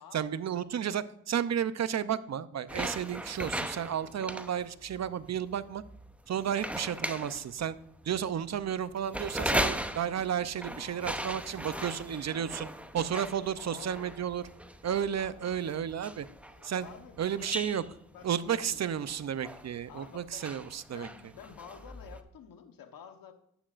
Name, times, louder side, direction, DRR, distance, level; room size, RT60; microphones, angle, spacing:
voice 1, 0.0-5.8 6.3-7.8 8.0-12.7 12.9-14.4 14.8-16.3 16.6-16.9 17.2-17.8 18.2-21.1, right 9 dB, 50° right, 15 dB, 0.6 m, -32 dB
sound 1, 2.7-22.2, right 1 dB, 5° right, 0.7 m, -38 dB
voice 2, 10.8-11.3 11.7-12.1 13.2-14.2 15.2-15.4 16.5-17.7 18.1-18.3 18.5-18.8 19.9-20.5 20.9-23.3, left 8 dB, 80° left, 7 dB, 1.2 m, -50 dB
11.0 x 9.0 x 2.5 m, 0.74 s
cardioid pair, 65°, 34 cm